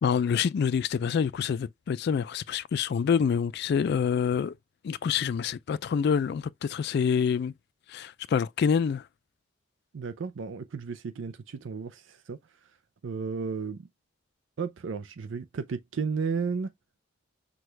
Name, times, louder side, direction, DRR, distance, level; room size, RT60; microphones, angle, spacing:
voice 1, 0.0-4.5 4.8-7.5 7.9-9.1, left 6 dB, 55° left, 0.3 m, -26 dB
voice 2, 9.9-12.4 13.0-13.9 14.6-16.7, right 5 dB, 75° right, 0.5 m, -33 dB
6.1 x 2.3 x 3.2 m
head